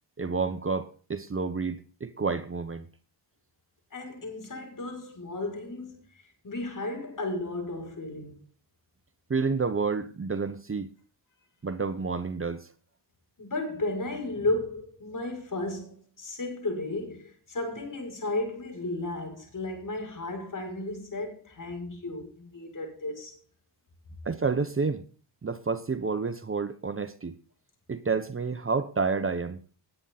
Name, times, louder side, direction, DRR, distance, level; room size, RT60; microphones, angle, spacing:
voice 1, 0.2-2.9 9.3-10.9 11.6-12.7 24.2-25.0 25.4-27.3 27.9-29.6, right 4 dB, 30° right, 1.1 m, -29 dB
voice 2, 3.9-8.4 13.4-23.4, left 2 dB, 45° left, 6.8 m, -34 dB
19.0 x 9.3 x 4.2 m
cardioid pair, 70°, 43 cm